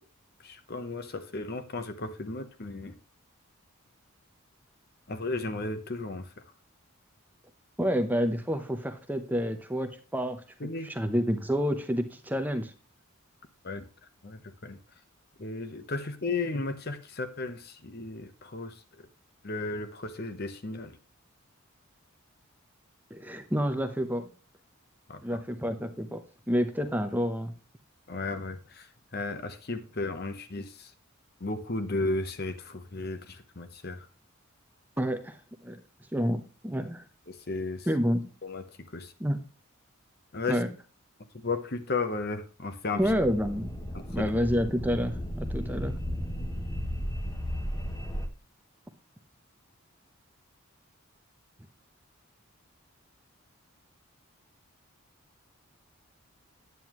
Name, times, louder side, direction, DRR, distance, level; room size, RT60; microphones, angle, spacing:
voice 1, 0.4-2.9 5.1-6.3 10.6-10.9 13.6-13.8 14.2-14.8 15.4-18.7 19.4-21.0 25.1-25.2 28.1-28.9 29.1-30.9 31.4-34.1 37.3-37.9 38.4-38.6 38.9-39.1 40.3-40.6 41.4-43.0 43.9-44.2, left 3 dB, 45° left, 0.9 m, -34 dB
voice 2, 7.8-10.4 10.8-12.7 23.1-24.3 25.2-26.2 26.5-27.5 35.0-35.8 36.1-37.0 37.9-38.3 39.2-39.4 40.5-40.7 43.0-43.7 44.1-45.9, equal, 10° right, 0.7 m, -29 dB
sound 1, 43.0-48.3, equal, 15° left, 1.1 m, -34 dB
9.4 x 9.1 x 3.0 m
head